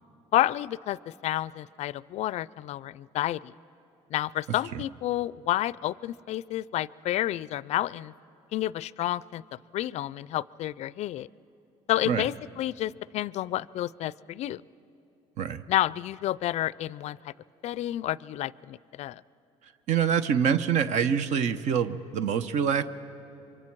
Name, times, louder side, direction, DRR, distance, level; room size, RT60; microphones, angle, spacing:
voice 1, 0.3-3.5 4.1-8.1 8.5-9.4 9.7-11.3 11.9-14.6 15.7-17.3 17.6-19.2, left 14 dB, 55° left, 21 dB, 0.4 m, -30 dB
voice 2, 19.9-22.8, right 7 dB, 65° right, 11 dB, 0.7 m, -25 dB
25.5 x 23.5 x 4.6 m, 2.9 s
supercardioid pair, 90°, 13 cm